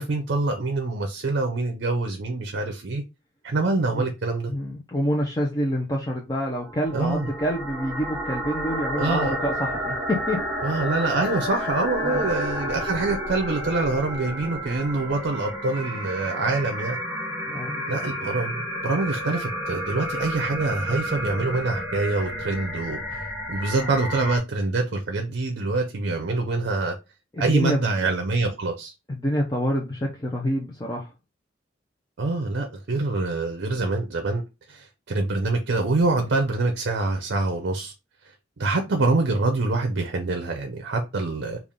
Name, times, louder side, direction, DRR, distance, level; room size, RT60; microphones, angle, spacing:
voice 1, 0.0-3.0 3.4-4.5 6.9-7.3 9.0-9.3 10.6-17.0 17.9-26.9 27.4-28.9 32.2-34.4 34.7-37.9 38.2-38.3 38.6-41.6, right 3 dB, 60° right, 0.6 m, -25 dB
voice 2, 4.5-10.4 12.0-12.3 17.4-17.8 23.8-24.0 27.3-27.8 29.1-31.1, equal, 20° left, 0.6 m, -27 dB
sound 1, 6.6-24.4, equal, 10° right, 1.0 m, -31 dB
3.5 x 2.4 x 3.6 m
head